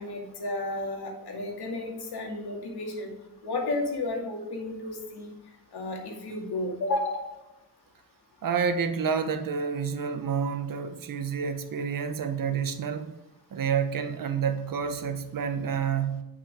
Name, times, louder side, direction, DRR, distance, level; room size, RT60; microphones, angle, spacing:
voice 1, 0.0-3.1 3.4-5.3 5.7-7.2, left 2 dB, 70° left, 2.4 m, -32 dB
voice 2, 8.4-13.1 13.5-16.2, right 6 dB, 55° right, 1.0 m, -29 dB
9.2 x 6.2 x 5.0 m
cardioid pair, 115°, 40 cm